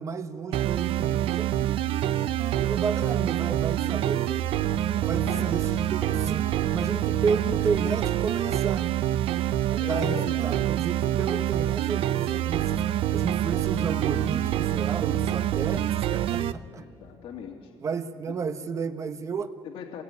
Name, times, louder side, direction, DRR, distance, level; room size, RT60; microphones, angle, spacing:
voice 1, 0.0-1.8 2.6-4.4 4.9-6.5 6.7-8.8 9.7-12.9 13.1-16.8 17.8-19.5, right 5 dB, 35° right, 10 dB, 1.1 m, -32 dB
sound 1, 0.5-16.5, right 12 dB, 80° right, 0.7 m, -26 dB
voice 2, 5.2-5.8 9.8-10.4 16.7-17.7 19.6-20.0, left 8 dB, 80° left, 1 dB, 2.5 m, -39 dB
26.5 x 19.5 x 9.7 m, 2.1 s
cardioid pair, 175°, 9 cm